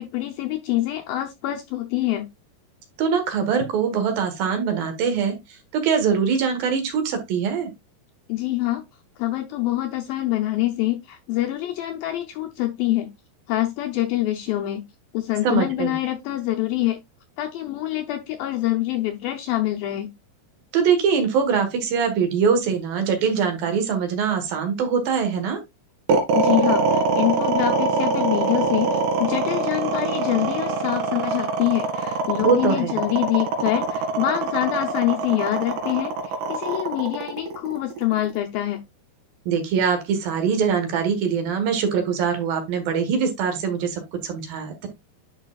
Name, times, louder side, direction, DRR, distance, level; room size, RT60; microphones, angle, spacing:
voice 1, 0.0-2.3 8.3-8.8 9.2-13.1 13.5-14.8 15.1-17.0 17.4-20.1 26.3-28.9 29.2-38.8, left 15 dB, 80° left, 4 dB, 2.1 m, -25 dB
voice 2, 3.0-7.7 15.4-16.0 20.7-25.6 32.4-33.0 39.5-44.9, right 6 dB, 65° right, 6 dB, 2.9 m, -23 dB
sound 1, 26.1-38.4, right 3 dB, 90° right, 3.9 m, -23 dB
10.5 x 4.9 x 2.3 m, 0.20 s
omnidirectional pair, 4.8 m